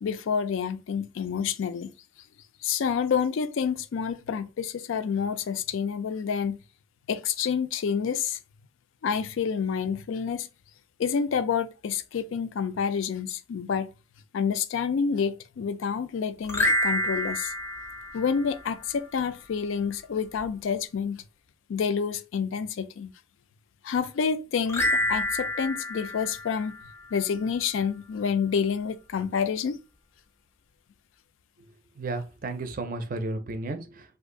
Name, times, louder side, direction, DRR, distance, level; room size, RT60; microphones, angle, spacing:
voice 1, 0.0-1.9 2.6-6.6 7.1-8.4 9.0-10.5 11.0-13.9 14.3-17.5 18.1-21.2 21.7-23.1 23.8-26.7 27.1-29.8, left 6 dB, 75° left, 0.3 m, -28 dB
sound 1, 16.4-18.9 24.7-27.3, left 1 dB, 15° left, 0.5 m, -29 dB
voice 2, 32.0-34.2, right 2 dB, 45° right, 0.5 m, -33 dB
2.6 x 2.4 x 3.7 m
head